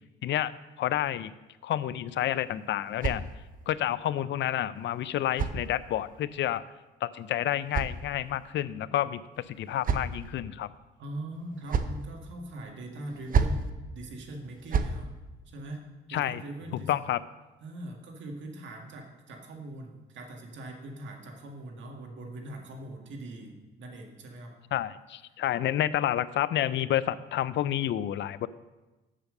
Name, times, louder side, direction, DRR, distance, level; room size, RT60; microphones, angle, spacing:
voice 1, 0.8-1.3 1.6-3.3 3.7-6.6 7.0-10.7 16.1-16.4 16.7-17.2 24.7-28.5, left 12 dB, 65° left, 17 dB, 0.5 m, -29 dB
sound 1, 2.1-3.8 4.8-6.2 7.2-8.5 9.4-10.4 11.3-12.1 13.1-13.7 14.4-15.0, right 5 dB, 45° right, 0.7 m, -32 dB
voice 2, 11.0-15.1 15.5-15.8 16.1-16.9 17.6-24.5, right 1 dB, 70° right, 2 dB, 1.8 m, -41 dB
7.5 x 6.6 x 6.5 m, 1.1 s
cardioid pair, 90°, 20 cm